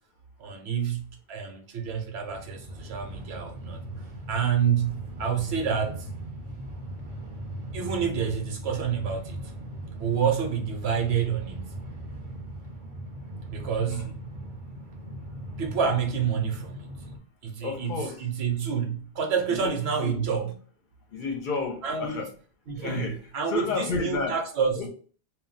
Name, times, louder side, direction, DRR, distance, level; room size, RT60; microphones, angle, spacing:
voice 1, 0.4-3.8 4.3-6.1 7.7-9.5 10.0-11.8 13.5-14.1 15.6-16.9 17.4-17.9 18.2-20.5 21.8-22.2 22.7-23.0 23.3-24.8, right 7 dB, 75° right, 0.9 m, -28 dB
Train, 2.0-17.2, right 1 dB, 35° right, 0.6 m, -39 dB
voice 2, 17.6-18.3 19.5-20.2 21.1-22.3 22.8-24.4 24.8-24.9, left 4 dB, 55° left, 0.7 m, -32 dB
2.2 x 2.1 x 3.8 m
omnidirectional pair, 1.1 m